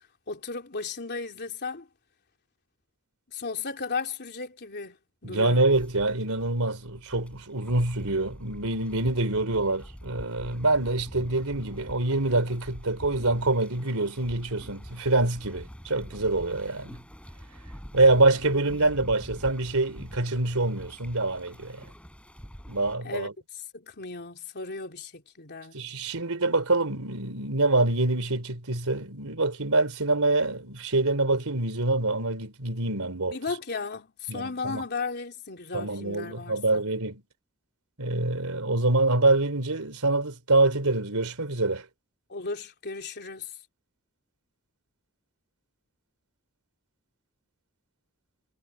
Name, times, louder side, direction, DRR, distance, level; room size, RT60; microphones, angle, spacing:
voice 1, 0.3-1.9 3.3-5.0 5.2-5.7 18.4-18.9 23.0-25.8 33.3-36.8 42.3-43.6, left 4 dB, 50° left, 3.4 m, -35 dB
voice 2, 5.2-17.0 17.9-21.9 22.7-23.3 25.7-33.4 34.3-34.8 35.7-37.2 38.0-41.9, right 2 dB, 80° right, 3.6 m, -25 dB
sound 1, 5.7-23.0, equal, 5° left, 6.3 m, -45 dB
head